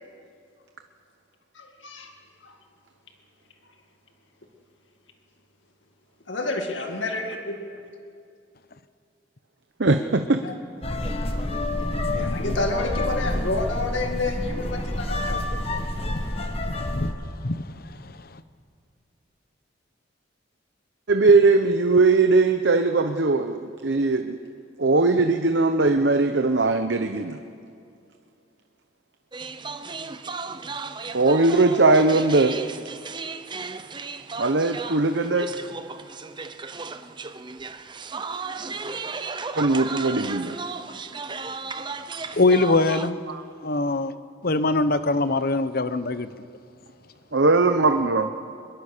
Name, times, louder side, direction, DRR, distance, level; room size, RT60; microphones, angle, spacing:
voice 1, 1.5-2.1 2.4-2.5 6.3-7.7 10.4-10.5 12.1-15.4, left 2 dB, 75° left, 3 dB, 2.1 m, -29 dB
voice 2, 9.8-10.4 21.1-24.4 24.8-27.4 31.1-32.6 34.4-35.5 39.6-40.6 43.3-43.4 47.3-48.3, right 3 dB, 65° right, 6 dB, 0.9 m, -20 dB
sound 1, 10.8-17.1, left 1 dB, 30° left, 1.5 m, -28 dB
voice 3, 12.0-12.5 16.1-16.2 16.9-17.1 17.4-17.6 42.3-43.2 43.6-44.1 44.4-46.3, left 2 dB, 50° left, 12 dB, 0.9 m, -23 dB
sound 2, 29.3-43.1, right 4 dB, 25° right, 0.8 m, -35 dB
24.5 x 22.0 x 6.8 m, 2.4 s
head